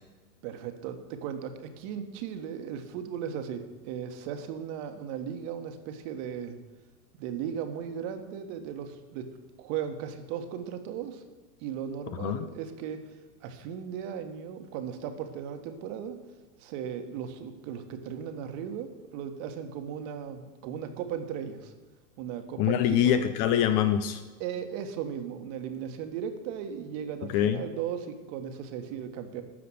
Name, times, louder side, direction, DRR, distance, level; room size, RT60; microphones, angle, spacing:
voice 1, 0.4-6.6 7.2-9.3 9.6-11.2 11.6-13.0 13.4-16.2 16.6-21.7 22.2-23.2 24.4-29.4, right 8 dB, 50° right, 7 dB, 1.5 m, -36 dB
voice 2, 22.6-24.2 27.3-27.6, left 10 dB, 35° left, 11 dB, 0.5 m, -24 dB
12.5 x 5.0 x 7.8 m, 1.3 s
hypercardioid pair, 110°, 49 cm